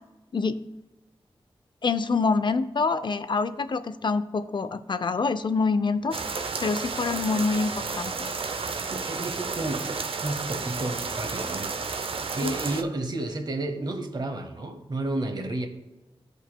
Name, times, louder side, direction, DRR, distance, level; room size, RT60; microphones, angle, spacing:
voice 1, 1.8-8.3 12.4-12.5, left 4 dB, 50° left, 12 dB, 0.5 m, -26 dB
sound 1, 6.1-12.8, right 4 dB, 70° right, 0.5 m, -32 dB
voice 2, 8.9-9.9 10.2-15.7, right 2 dB, 45° right, 5 dB, 1.0 m, -32 dB
14.5 x 5.1 x 2.2 m, 1.1 s
wide cardioid pair, 75°, 10 cm